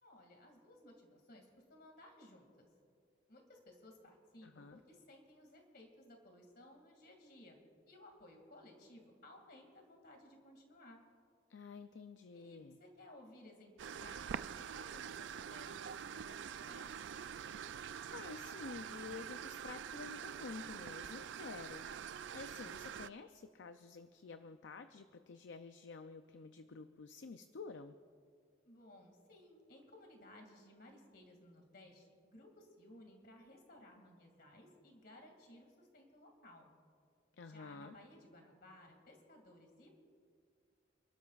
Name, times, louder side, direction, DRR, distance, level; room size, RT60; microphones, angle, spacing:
voice 1, 0.0-2.5 3.3-7.6 7.9-11.0 12.3-17.0 28.6-36.7 37.4-39.9, left 1 dB, 55° left, 3 dB, 2.3 m, -59 dB
voice 2, 4.4-4.8 11.5-12.8 17.8-21.9 22.3-27.9 37.3-38.0, left 4 dB, 75° left, 9 dB, 0.5 m, -50 dB
sound 1, 13.8-23.1, right 8 dB, 70° right, 0.3 m, -46 dB
29.0 x 12.5 x 2.4 m, 2.2 s
head